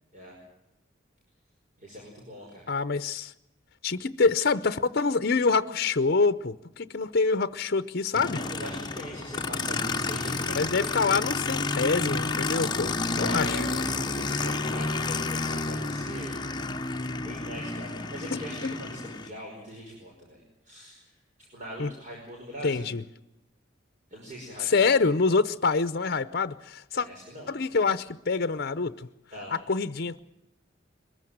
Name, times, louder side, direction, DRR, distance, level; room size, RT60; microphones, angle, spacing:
voice 1, 1.8-2.7 8.4-11.3 12.9-16.3 17.1-21.0 21.5-22.9 24.1-24.7 27.0-27.5 29.3-29.5, equal, 40° right, 5.5 m, -42 dB
voice 2, 2.7-3.3 3.8-8.4 10.6-13.7 18.3-18.7 21.8-21.9 22.6-23.0 24.6-27.1 27.5-29.1 29.5-30.2, left 4 dB, 55° left, 0.7 m, -26 dB
Aircraft, 8.1-19.3, left 3 dB, 25° left, 1.0 m, -30 dB
22.0 x 14.5 x 9.2 m
head